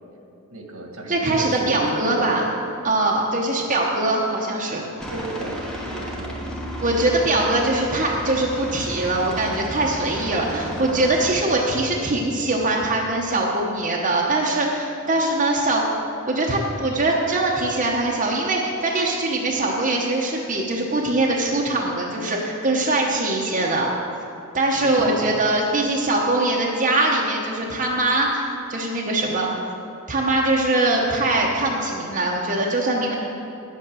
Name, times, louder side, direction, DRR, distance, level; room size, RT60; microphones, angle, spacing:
voice 1, 0.5-2.5 5.1-6.4 24.8-25.3, right 1 dB, 75° right, 1 dB, 1.7 m, -33 dB
voice 2, 1.1-2.4 2.8-4.9 6.8-15.9 16.3-23.9 24.5-28.4 28.7-29.7 30.1-33.1, right 2 dB, 35° right, -2 dB, 0.9 m, -22 dB
Aircraft, 5.0-11.3, equal, 5° left, 1.2 m, -33 dB
9.9 x 8.3 x 6.2 m, 2.8 s
head